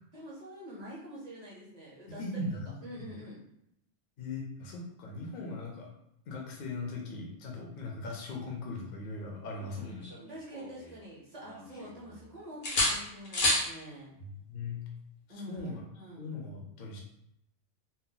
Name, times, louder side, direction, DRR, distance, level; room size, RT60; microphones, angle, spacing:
voice 1, 0.1-3.4 10.3-14.2 15.3-16.3, equal, 40° right, -5 dB, 0.7 m, -46 dB
voice 2, 2.1-2.7 4.2-5.9 6.3-10.1 14.2-14.8 15.5-15.8 16.2-17.0, left 2 dB, 60° left, 0 dB, 0.7 m, -39 dB
sound 1, 9.5-11.0 11.4-12.2 12.6-13.7 15.6-15.8, left 1 dB, 90° left, 1.2 m, -32 dB
2.8 x 2.0 x 3.7 m, 0.80 s
omnidirectional pair, 1.2 m